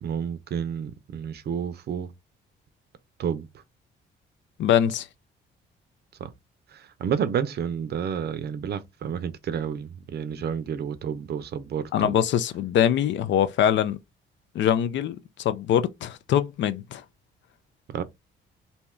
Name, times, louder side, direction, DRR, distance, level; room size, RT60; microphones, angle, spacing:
voice 1, 0.0-2.1 3.2-3.5 6.2-6.3 7.0-12.1 17.9-18.0, right 8 dB, 55° right, 0.5 m, -30 dB
voice 2, 4.6-5.1 11.9-14.0 14.5-17.0, left 10 dB, 70° left, 0.5 m, -23 dB
2.8 x 2.3 x 3.1 m
cardioid pair, 90°, 20 cm